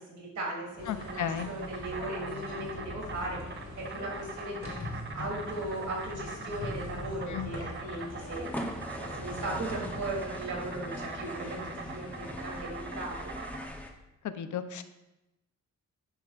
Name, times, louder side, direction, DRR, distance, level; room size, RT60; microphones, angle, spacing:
voice 1, 0.0-4.8 5.1-8.5 8.9-13.3, right 2 dB, 80° right, -3 dB, 3.1 m, -38 dB
Insect, 0.6-13.7, right 4 dB, 40° right, 0.7 m, -43 dB
sound 1, 0.8-12.7, left 2 dB, 60° left, 3.7 m, -43 dB
voice 2, 0.9-1.5 7.3-7.5 14.2-14.8, left 9 dB, 80° left, 10 dB, 0.7 m, -34 dB
sound 2, 8.1-13.9, left 1 dB, 5° left, 0.8 m, -41 dB
11.0 x 10.0 x 2.5 m, 0.97 s
wide cardioid pair, 175°, 30 cm